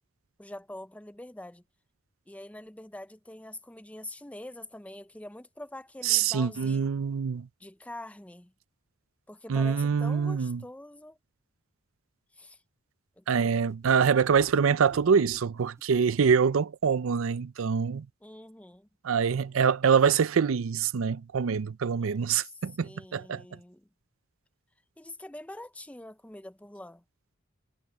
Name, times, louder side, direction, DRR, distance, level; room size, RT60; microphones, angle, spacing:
voice 1, 0.4-1.6 2.3-6.9 7.6-8.5 9.3-11.2 12.3-12.6 13.2-13.7 18.2-18.9 22.0-23.9 25.0-27.0, left 1 dB, 5° left, 0.6 m, -45 dB
voice 2, 6.0-7.5 9.5-10.6 13.3-18.1 19.0-23.4, right 6 dB, 75° right, 0.5 m, -25 dB
sound 1, 13.7-16.5, equal, 15° right, 4.8 m, -52 dB
head